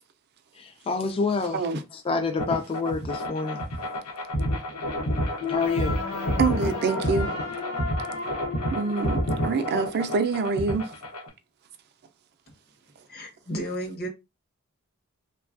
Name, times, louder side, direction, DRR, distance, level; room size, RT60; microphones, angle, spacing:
voice 1, 0.5-1.6 2.1-3.6 5.5-6.0, left 4 dB, 25° left, 0.3 m, -27 dB
sound 1, 2.4-11.3, equal, 90° left, 0.9 m, -29 dB
sound 2, 5.4-10.4, left 5 dB, 60° left, 1.1 m, -35 dB
voice 2, 6.4-7.3 8.7-10.9, right 4 dB, 45° right, 0.4 m, -26 dB
voice 3, 13.1-14.1, right 1 dB, 45° left, 0.7 m, -33 dB
3.1 x 2.3 x 2.4 m
head